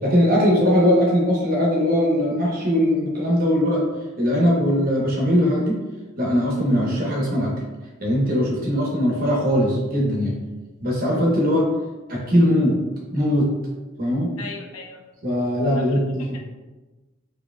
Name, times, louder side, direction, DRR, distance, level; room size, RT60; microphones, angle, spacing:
voice 1, 0.0-3.8 4.2-5.8 6.2-7.5 8.0-10.3 10.8-11.6 12.1-12.7 13.1-13.5 14.0-14.3 15.2-16.2, equal, 45° right, -3 dB, 1.0 m, -20 dB
voice 2, 14.4-15.0 15.7-16.4, left 4 dB, 85° left, 2 dB, 0.6 m, -39 dB
4.8 x 3.0 x 2.2 m, 1.2 s
head